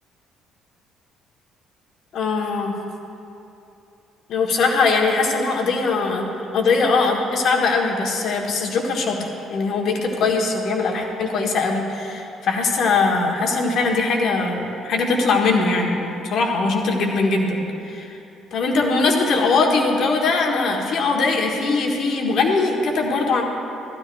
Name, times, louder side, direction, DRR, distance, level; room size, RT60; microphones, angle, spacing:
voice 1, 2.1-2.7 4.3-9.2 9.5-18.2 18.5-23.4, left 3 dB, 50° left, 1 dB, 1.5 m, -21 dB
17.5 x 13.0 x 2.6 m, 2.9 s
figure-of-eight pair, 45°, 0 cm